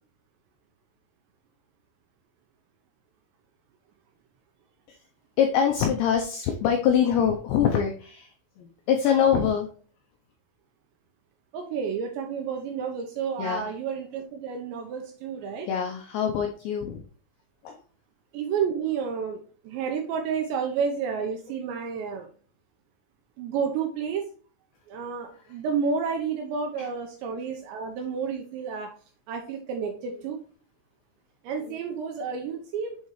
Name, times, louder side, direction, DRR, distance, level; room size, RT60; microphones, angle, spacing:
voice 1, 5.4-8.3 8.6-9.7 13.4-13.7 15.7-17.0 17.6-17.8 26.8-26.9, left 8 dB, 90° left, 3 dB, 2.5 m, -24 dB
voice 2, 11.5-15.7 18.3-22.3 23.4-24.3 24.9-28.9 29.3-30.4 31.4-33.0, right 6 dB, 80° right, 3 dB, 2.6 m, -30 dB
8.5 x 4.0 x 3.1 m, 0.42 s
omnidirectional pair, 5.9 m